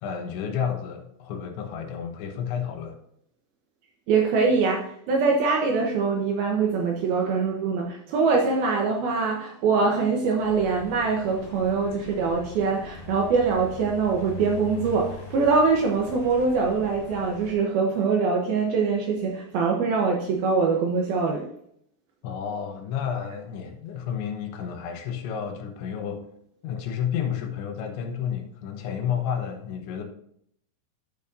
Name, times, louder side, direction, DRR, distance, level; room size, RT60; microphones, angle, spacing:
voice 1, 0.0-3.0 22.2-26.3 26.6-30.0, left 8 dB, 80° left, 3.4 m, -31 dB
voice 2, 4.1-21.5, right 4 dB, 75° right, 2.4 m, -23 dB
sound 1, 10.4-17.5, left 2 dB, 55° left, 3.3 m, -42 dB
12.5 x 7.1 x 2.7 m
omnidirectional pair, 5.3 m